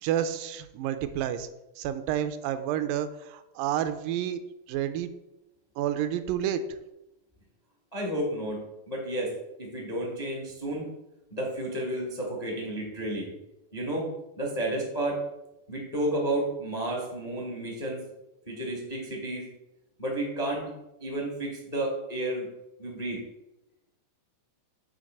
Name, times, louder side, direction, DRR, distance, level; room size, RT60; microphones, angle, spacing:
voice 1, 0.0-1.5 1.8-4.4 4.7-5.1 5.8-6.6, right 10 dB, 85° right, 11 dB, 2.2 m, -29 dB
voice 2, 7.9-10.9 11.3-13.3 13.7-14.1 14.4-15.2 15.7-18.0 18.5-19.5 20.0-20.7 21.0-22.5 22.8-23.2, right 1 dB, 75° left, -2 dB, 0.3 m, -31 dB
7.7 x 3.3 x 6.3 m, 0.93 s
omnidirectional pair, 3.9 m